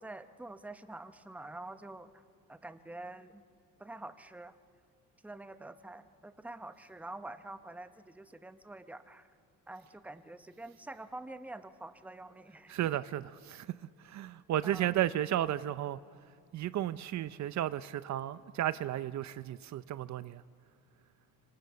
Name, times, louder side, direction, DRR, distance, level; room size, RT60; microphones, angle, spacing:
voice 1, 0.0-2.2 2.5-3.4 3.8-4.6 5.2-9.3 9.7-12.7 14.6-14.9, right 2 dB, 5° right, 0.8 m, -46 dB
voice 2, 12.7-13.7 14.0-16.0 16.5-20.4, right 12 dB, 55° right, 0.6 m, -33 dB
26.0 x 25.5 x 6.8 m
cardioid pair, 140°, 34 cm